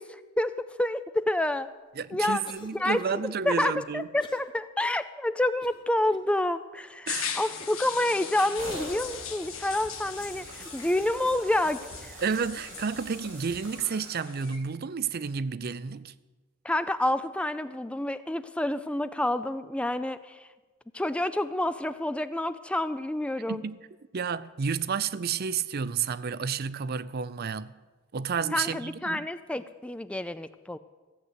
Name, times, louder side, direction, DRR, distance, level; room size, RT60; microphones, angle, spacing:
voice 1, 0.0-1.7 2.1-2.4 2.7-12.2 16.6-20.5 20.9-23.6 28.5-30.8, left 1 dB, 5° left, 0.3 m, -28 dB
voice 2, 2.0-4.1 7.1-7.3 12.2-16.1 23.5-23.8 24.1-27.8 28.1-29.3, right 6 dB, 50° right, 0.5 m, -31 dB
Cough, 2.4-3.2 4.2-4.5 5.0-5.1 5.6-6.3 6.9-7.0 7.6-7.9, left 2 dB, 25° left, 1.0 m, -50 dB
sound 1, 7.1-14.6, left 7 dB, 80° left, 1.4 m, -39 dB
sound 2, 8.6-14.6, right 1 dB, 85° right, 2.7 m, -44 dB
15.0 x 8.0 x 8.1 m
head